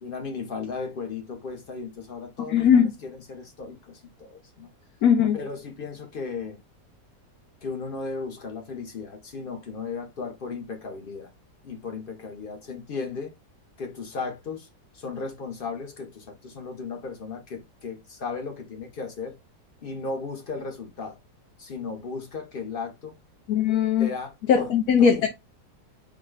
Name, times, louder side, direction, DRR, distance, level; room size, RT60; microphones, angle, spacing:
voice 1, 0.0-4.7 5.3-6.6 7.6-11.3 11.6-13.3 13.8-14.7 14.9-19.4 19.8-21.2 21.6-23.2 24.0-24.7 25.0-25.2, left 4 dB, 45° left, 0.7 m, -35 dB
voice 2, 2.5-2.9 5.0-5.4 23.5-24.1 24.5-25.3, left 7 dB, 70° left, 1.1 m, -19 dB
4.0 x 2.2 x 4.5 m
omnidirectional pair, 1.8 m